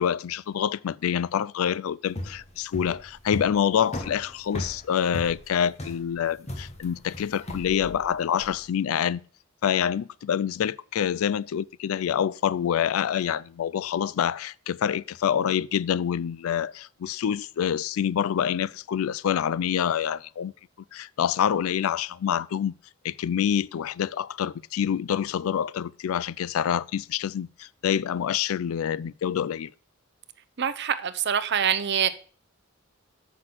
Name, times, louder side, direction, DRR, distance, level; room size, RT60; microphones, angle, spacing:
voice 1, 0.0-9.2 9.6-20.5 20.9-22.7 23.0-29.7, left 8 dB, 90° left, 0.4 m, -26 dB
sound 1, 2.0-8.6, left 1 dB, 30° left, 1.3 m, -37 dB
voice 2, 30.6-32.1, right 8 dB, 55° right, 0.7 m, -25 dB
7.7 x 6.0 x 6.0 m
head